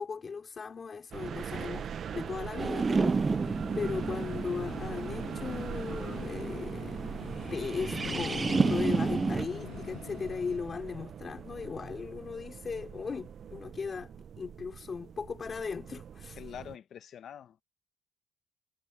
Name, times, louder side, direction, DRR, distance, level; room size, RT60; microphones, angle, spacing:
voice 1, 0.0-7.0 7.5-14.1 14.4-16.4, left 5 dB, 40° left, 3.9 m, -37 dB
sound 1, 1.1-16.8, right 8 dB, 60° right, 0.7 m, -42 dB
sound 2, 2.6-9.5, right 4 dB, 30° right, 0.4 m, -31 dB
sound 3, 3.3-10.6, left 13 dB, 85° left, 7.0 m, -44 dB
voice 2, 16.4-17.6, left 9 dB, 65° left, 1.5 m, -45 dB
cardioid pair, 90°, 0 cm